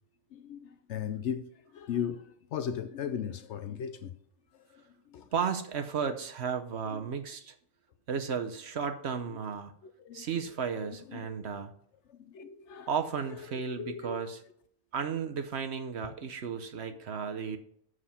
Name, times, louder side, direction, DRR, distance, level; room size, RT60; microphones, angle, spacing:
voice 1, 0.3-4.1 4.7-5.3 6.9-7.1 9.8-10.4 11.1-11.6 12.1-12.9 13.5-14.2 16.5-16.6, left 8 dB, 65° left, 0.8 m, -38 dB
voice 2, 5.3-7.5 8.1-9.7 10.1-11.7 12.9-14.4 14.9-17.6, right 6 dB, 60° right, 0.9 m, -34 dB
7.4 x 6.3 x 5.7 m
omnidirectional pair, 1.5 m